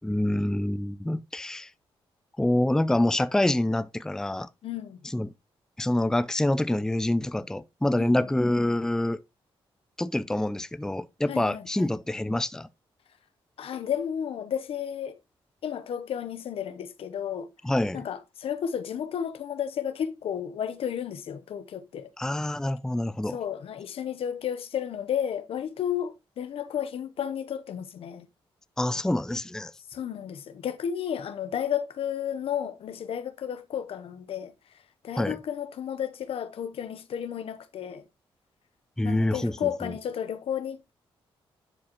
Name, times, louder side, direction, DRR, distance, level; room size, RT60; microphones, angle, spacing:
voice 1, 0.0-1.7 2.4-4.5 5.1-5.3 5.8-9.2 10.0-12.7 17.6-18.0 22.2-23.4 28.8-29.7 35.2-35.4 39.0-39.9, left 1 dB, 5° left, 0.4 m, -26 dB
voice 2, 4.6-5.0 8.0-8.3 11.3-11.9 13.6-15.1 15.6-17.5 17.9-22.1 23.3-28.3 29.9-34.5 35.0-38.0 39.0-40.9, left 9 dB, 70° left, 0.8 m, -32 dB
11.0 x 4.9 x 3.0 m
cardioid pair, 80°, 10 cm